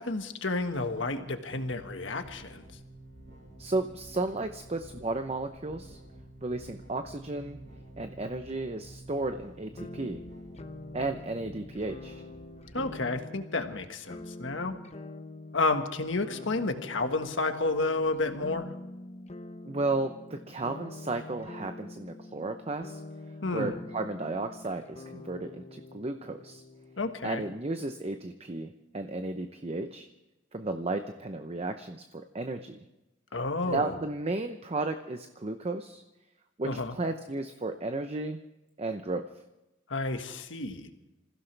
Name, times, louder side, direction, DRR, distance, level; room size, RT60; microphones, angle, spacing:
voice 1, 0.0-2.6 12.7-14.8 15.5-18.7 23.4-23.7 27.0-27.4 33.3-34.0 36.6-36.9 39.9-40.9, left 3 dB, 70° left, 6 dB, 1.6 m, -31 dB
sound 1, 1.5-13.0, right 1 dB, 75° right, 5.3 m, -50 dB
voice 2, 3.6-6.0 6.4-7.6 8.0-10.2 10.9-12.2 19.6-23.0 23.5-26.6 27.2-30.1 30.5-32.8 33.7-36.0 36.6-38.4 38.8-39.2, right 2 dB, 30° right, 7 dB, 0.8 m, -34 dB
sound 2, 9.8-27.6, left 2 dB, 35° left, 1.0 m, -45 dB
27.0 x 15.5 x 3.4 m, 0.97 s
head